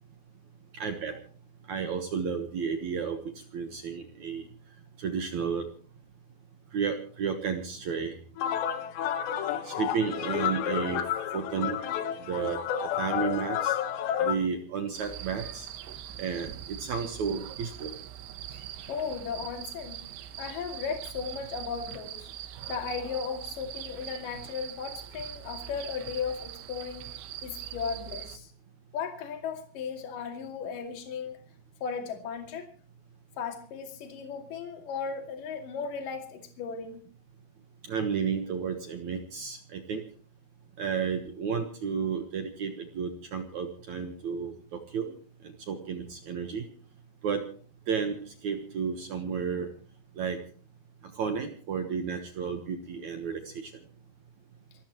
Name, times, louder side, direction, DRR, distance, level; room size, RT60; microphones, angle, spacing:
voice 1, 0.7-1.2 1.7-3.2 3.5-4.4 5.0-5.7 6.7-8.2 9.6-11.0 11.3-11.8 12.3-12.6 13.0-13.8 14.2-15.7 16.2-17.9 37.9-40.0 40.8-45.1 45.4-46.6 47.2-47.4 47.9-49.7 50.2-50.4 51.2-53.7, right 6 dB, 70° right, 6 dB, 1.8 m, -32 dB
sound 1, 8.4-14.4, left 10 dB, 75° left, 3.4 m, -30 dB
sound 2, 14.9-28.4, right 11 dB, 90° right, 3.5 m, -42 dB
voice 2, 18.5-20.0 20.4-22.3 22.7-27.1 27.4-28.5 28.9-31.4 31.8-32.7 33.4-37.0, left 6 dB, 55° left, 4 dB, 3.7 m, -36 dB
27.5 x 13.5 x 3.1 m, 0.43 s
omnidirectional pair, 5.1 m